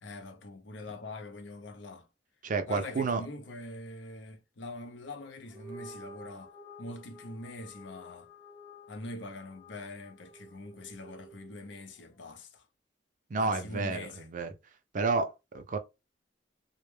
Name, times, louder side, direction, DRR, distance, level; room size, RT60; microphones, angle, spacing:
voice 1, 0.0-2.1 2.7-6.5 6.8-8.3 8.9-12.7 13.4-14.3, left 2 dB, 85° left, 0.6 m, -43 dB
voice 2, 2.4-3.2 13.3-14.5 14.9-15.8, right 4 dB, 45° right, 0.5 m, -30 dB
sound 1, 5.4-12.0, left 1 dB, ahead, 0.6 m, -51 dB
2.1 x 2.1 x 3.1 m
head